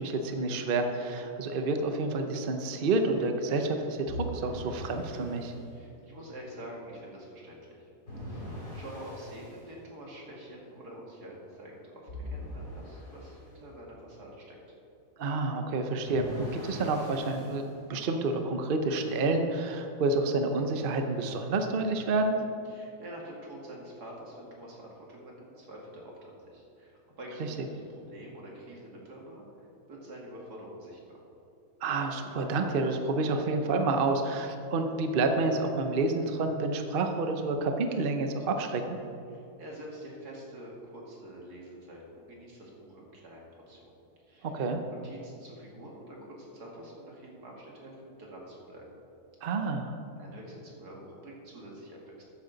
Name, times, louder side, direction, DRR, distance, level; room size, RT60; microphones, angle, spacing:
voice 1, 0.0-5.5 15.2-22.3 31.8-39.0 44.4-44.8 49.4-50.0, right 3 dB, 45° right, 5 dB, 0.8 m, -29 dB
sound 1, 4.1-5.5 8.1-9.6 12.1-13.4 16.1-17.6, left 1 dB, 85° left, 3.5 m, -41 dB
voice 2, 5.7-7.9 8.2-14.6 22.7-29.5 29.9-31.2 39.3-43.8 44.2-44.6 44.9-48.9 50.2-52.2, right 1 dB, 85° right, -3 dB, 2.8 m, -46 dB
13.0 x 9.5 x 4.0 m, 2.7 s
omnidirectional pair, 1.6 m